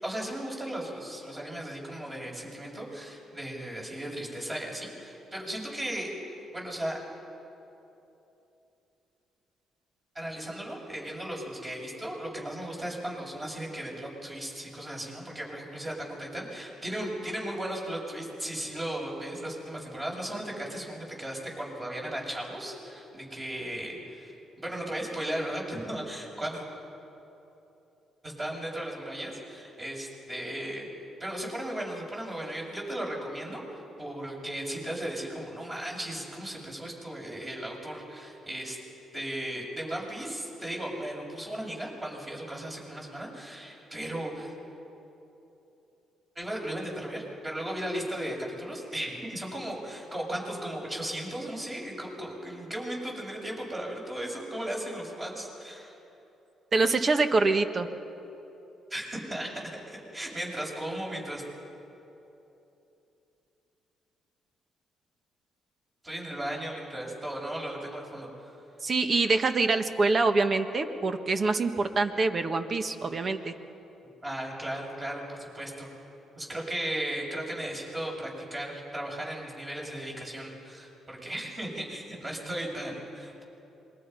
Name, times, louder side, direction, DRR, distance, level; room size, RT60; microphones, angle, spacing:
voice 1, 0.0-6.1 6.5-7.1 10.2-24.3 24.6-26.6 28.2-30.9 31.2-38.8 39.1-44.5 46.4-56.0 58.9-59.5 59.9-61.4 66.0-68.5 74.2-75.9 76.4-83.4, right 1 dB, 25° right, -2 dB, 7.1 m, -36 dB
voice 2, 56.7-57.9 68.8-73.5, right 3 dB, 40° right, 8 dB, 1.5 m, -25 dB
27.0 x 22.5 x 5.7 m, 3.0 s
cardioid pair, 90°, 0 cm